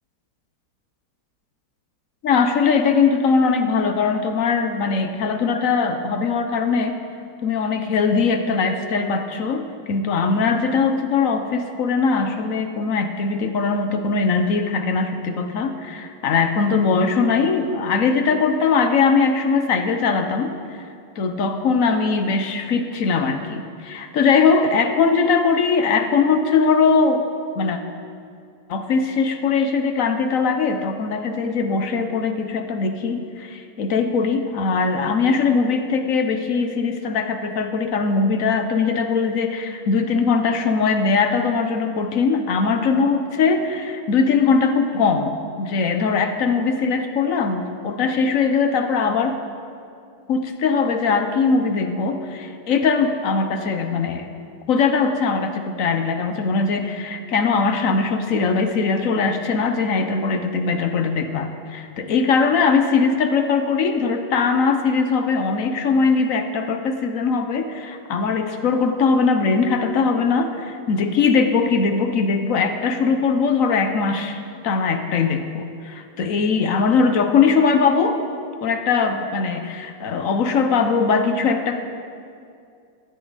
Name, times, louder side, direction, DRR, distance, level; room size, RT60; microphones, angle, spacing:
voice 1, 2.2-6.9 7.4-20.8 21.2-27.2 27.6-27.8 28.7-45.3 45.6-49.3 50.3-54.3 54.7-78.2 78.6-81.8, left 5 dB, 55° left, 7 dB, 1.0 m, -20 dB
15.5 x 13.5 x 4.1 m, 2.4 s
omnidirectional pair, 2.0 m